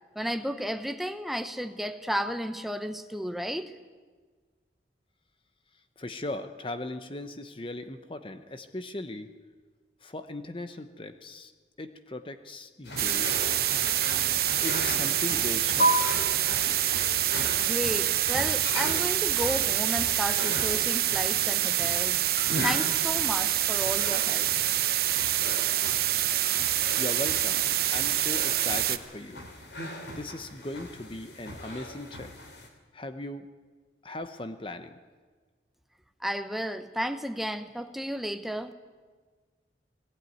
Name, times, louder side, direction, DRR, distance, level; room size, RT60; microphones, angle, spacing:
voice 1, 0.1-3.7 17.7-22.2 22.6-24.5 36.2-38.7, equal, ahead, 8 dB, 0.8 m, -33 dB
voice 2, 6.0-9.3 10.0-11.5 11.8-13.3 14.6-16.0 27.0-27.6 27.9-29.5 30.1-32.3 32.9-33.5 34.0-35.0, left 2 dB, 30° left, 9 dB, 0.8 m, -38 dB
sound 1, 12.8-32.7, equal, 70° left, 3.0 m, -36 dB
sound 2, 13.0-29.0, right 13 dB, 55° right, 0.8 m, -26 dB
19.5 x 15.0 x 9.3 m, 1.5 s
head